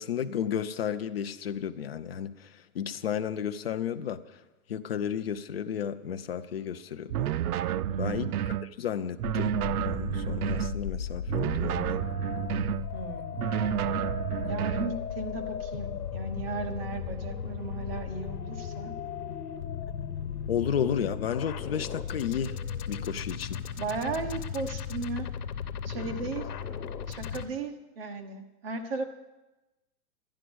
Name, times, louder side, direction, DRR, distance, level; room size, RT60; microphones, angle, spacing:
voice 1, 0.0-4.4 4.7-7.3 8.0-9.5 9.8-12.0 20.5-22.6 22.9-23.6, left 8 dB, 45° left, 11 dB, 0.5 m, -33 dB
sound 1, 7.1-8.7 9.2-10.8 11.3-12.9 13.4-15.0, right 11 dB, 80° right, 0.5 m, -30 dB
voice 2, 7.9-8.3 12.9-13.5 14.5-18.9 23.8-25.3 25.8-26.5 27.1-29.1, right 4 dB, 40° right, 5 dB, 1.1 m, -36 dB
sound 2, 9.2-27.4, left 8 dB, 90° left, 1.1 m, -36 dB
11.5 x 10.5 x 6.2 m, 1.1 s
hypercardioid pair, 175°, 45 cm